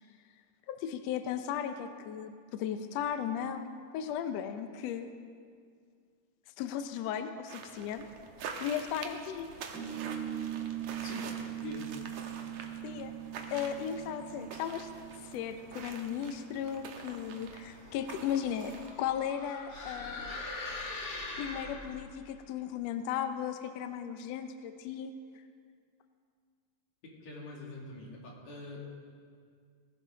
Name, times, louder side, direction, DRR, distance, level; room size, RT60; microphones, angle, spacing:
voice 1, 0.7-5.1 6.6-8.1 8.6-9.5 12.8-13.1 13.5-14.9 15.2-20.4 21.4-25.1, left 9 dB, 80° left, 8 dB, 1.5 m, -36 dB
sound 1, 7.5-19.1, right 5 dB, 70° right, 2.1 m, -46 dB
sound 2, 9.7-16.7, right 10 dB, 25° right, 2.4 m, -41 dB
sound 3, 17.7-22.2, left 2 dB, 40° left, 1.6 m, -42 dB
voice 2, 27.2-28.8, left 2 dB, 60° left, -3 dB, 3.6 m, -44 dB
18.0 x 15.5 x 3.9 m, 2.1 s
omnidirectional pair, 3.7 m